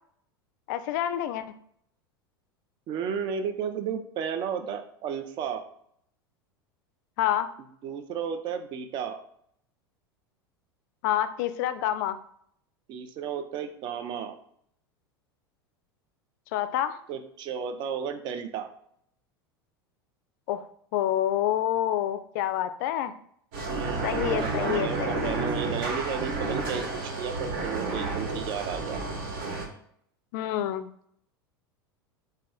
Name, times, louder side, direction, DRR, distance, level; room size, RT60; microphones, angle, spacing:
voice 1, 0.7-1.5 7.2-7.5 11.0-12.2 16.5-17.0 20.5-20.7 20.9-23.1 24.0-25.4 30.3-30.9, left 11 dB, 50° left, 12 dB, 0.4 m, -28 dB
voice 2, 2.9-5.6 7.8-9.2 12.9-14.4 17.1-18.7 23.6-29.0, right 7 dB, 35° right, 8 dB, 0.5 m, -33 dB
sound 1, 23.5-29.7, right 3 dB, 55° right, 1.3 m, -31 dB
4.1 x 2.2 x 3.4 m, 0.67 s
figure-of-eight pair, 80°, 13 cm